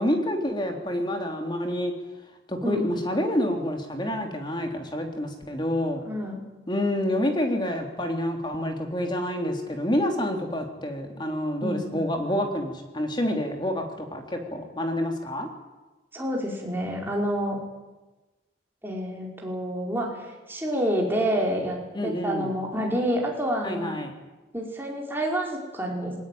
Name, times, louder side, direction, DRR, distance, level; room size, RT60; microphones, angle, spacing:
voice 1, 0.0-1.9 2.5-6.0 6.7-15.5 21.9-22.5 23.6-24.1, left 1 dB, 25° left, 3 dB, 3.3 m, -28 dB
voice 2, 2.6-2.9 6.1-6.4 11.6-12.0 16.1-17.6 18.8-21.8 22.0-24.0 24.5-26.1, equal, 10° right, -1 dB, 5.2 m, -28 dB
21.5 x 19.5 x 9.4 m, 1.1 s
head